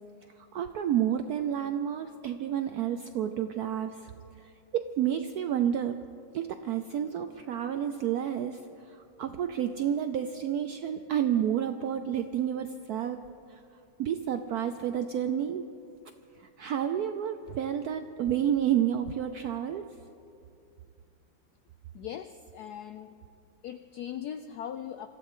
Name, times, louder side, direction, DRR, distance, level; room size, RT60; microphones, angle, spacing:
voice 1, 0.5-4.1 4.7-6.0 6.3-13.2 13.5-13.6 14.0-15.7 16.4-19.9, right 9 dB, 75° right, 9 dB, 0.8 m, -30 dB
voice 2, 21.9-23.2 23.6-25.1, left 9 dB, 80° left, 10 dB, 0.8 m, -40 dB
25.5 x 15.0 x 3.7 m, 2.6 s
omnidirectional pair, 2.2 m